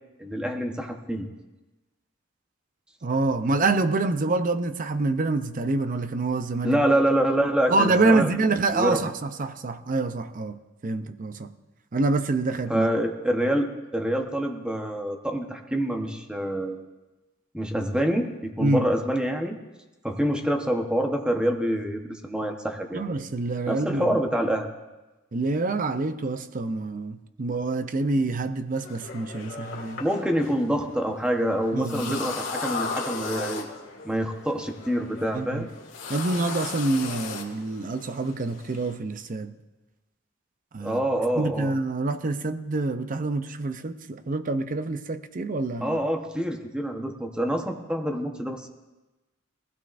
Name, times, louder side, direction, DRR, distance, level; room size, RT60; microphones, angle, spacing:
voice 1, 0.2-1.3 6.6-8.3 8.7-9.0 12.7-16.8 17.5-19.6 20.0-23.0 23.6-24.7 30.0-33.7 34.0-35.7 40.8-41.7 45.8-48.7, right 1 dB, 5° right, 1.0 m, -26 dB
voice 2, 3.0-6.8 7.7-11.5 11.9-12.9 18.6-18.9 22.9-24.2 25.3-30.0 31.7-32.2 35.3-35.7 36.1-39.5 40.7-41.0 41.3-46.0, right 3 dB, 45° right, 0.6 m, -26 dB
sound 1, 28.7-38.9, left 4 dB, 80° left, 2.4 m, -37 dB
20.0 x 16.0 x 2.6 m
head